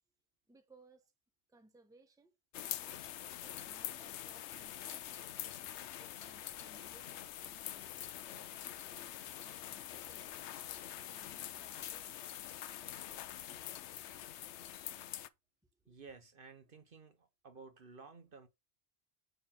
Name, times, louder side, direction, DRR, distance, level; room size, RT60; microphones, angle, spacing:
voice 1, 0.5-1.1 1.5-2.3 3.4-5.1 6.0-10.4 11.1-12.2 15.8-16.0, right 2 dB, 5° right, 0.9 m, -64 dB
sound 1, 2.5-15.3, left 11 dB, 85° left, 0.9 m, -45 dB
voice 2, 15.9-18.5, right 4 dB, 55° right, 1.2 m, -54 dB
9.2 x 3.3 x 5.8 m
omnidirectional pair, 1.1 m